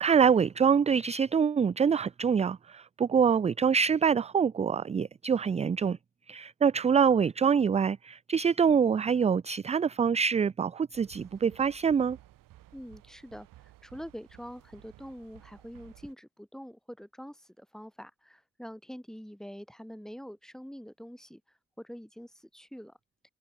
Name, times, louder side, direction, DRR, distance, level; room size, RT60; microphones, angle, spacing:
voice 1, 0.0-6.0 6.3-12.2, right 6 dB, 20° right, 0.3 m, -25 dB
sound 1, 10.9-16.1, right 15 dB, 85° right, 1.2 m, -56 dB
voice 2, 12.7-22.9, equal, ahead, 3.5 m, -45 dB
supercardioid pair, 55°, 32 cm